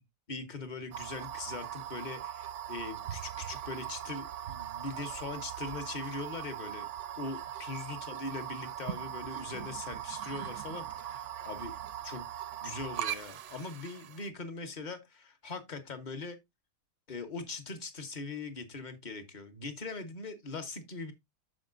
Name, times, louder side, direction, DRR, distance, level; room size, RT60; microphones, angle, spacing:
voice 1, 0.3-6.9 7.2-11.7 12.0-12.3 12.6-16.4 17.1-21.1, left 3 dB, 30° left, 1.2 m, -41 dB
sound 1, 0.9-14.3, right 11 dB, 65° right, 0.8 m, -40 dB
13.0 x 5.1 x 2.6 m
omnidirectional pair, 1.7 m